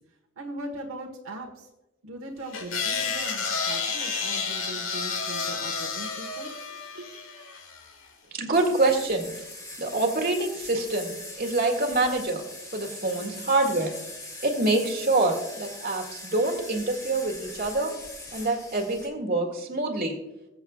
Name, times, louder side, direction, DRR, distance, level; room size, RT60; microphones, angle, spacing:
voice 1, 0.4-1.6 2.0-7.1, right 1 dB, 85° right, 1 dB, 1.3 m, -40 dB
sound 1, 2.5-7.9, left 5 dB, 70° left, 1.6 m, -31 dB
voice 2, 8.3-9.3 9.8-12.4 12.7-13.9 14.4-17.9 18.3-20.2, right 2 dB, 45° right, 2 dB, 1.9 m, -26 dB
hand grinder, 8.5-19.1, left 1 dB, 20° left, 2.2 m, -41 dB
21.5 x 7.8 x 2.3 m, 0.96 s
head